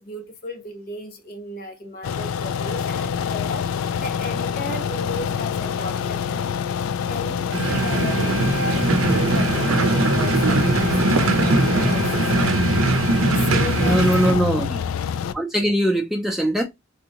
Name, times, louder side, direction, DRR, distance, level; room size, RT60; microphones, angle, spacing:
voice 1, 0.0-6.5 7.1-12.9 13.5-14.4, left 2 dB, 50° left, 0.9 m, -35 dB
sound 1, 2.0-15.3, left 7 dB, 85° left, 0.3 m, -26 dB
sound 2, 7.5-14.3, right 2 dB, 85° right, 0.5 m, -20 dB
voice 2, 13.8-14.8 15.3-16.6, right 1 dB, ahead, 0.4 m, -21 dB
3.4 x 2.7 x 2.8 m
head